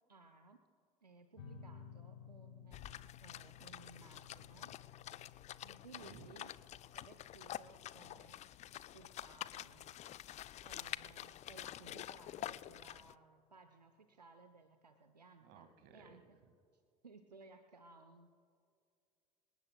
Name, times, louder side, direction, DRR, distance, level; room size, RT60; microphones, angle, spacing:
voice 1, 0.1-0.6 1.0-4.8 5.6-6.5 6.9-8.4 8.9-10.0 10.6-16.4 16.7-18.3, right 3 dB, 85° right, 8 dB, 0.7 m, -60 dB
sound 1, 1.4-12.4, left 7 dB, 65° left, 1.7 m, -58 dB
sound 2, 2.7-13.1, left 12 dB, 35° left, 0.4 m, -48 dB
voice 2, 5.9-6.4 15.4-16.5, right 6 dB, 55° right, 8 dB, 1.9 m, -59 dB
26.0 x 18.0 x 2.3 m, 2.3 s
figure-of-eight pair, 60°, 20 cm